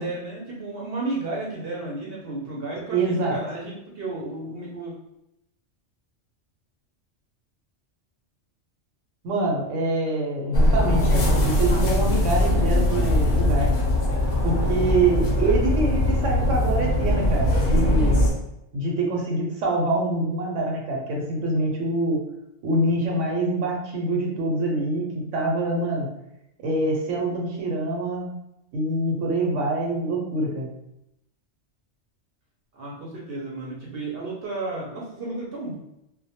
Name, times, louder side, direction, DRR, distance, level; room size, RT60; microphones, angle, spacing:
voice 1, 0.0-4.9 32.7-35.8, right 2 dB, 65° right, -3 dB, 0.7 m, -33 dB
voice 2, 2.9-3.4 9.2-13.9 14.4-18.2 18.7-22.2 22.6-26.1 26.6-28.3 28.7-30.7, right 2 dB, 90° right, -1 dB, 0.9 m, -25 dB
sound 1, 10.5-18.3, left 1 dB, 60° left, 0.6 m, -21 dB
2.1 x 2.1 x 2.8 m, 0.84 s
omnidirectional pair, 1.2 m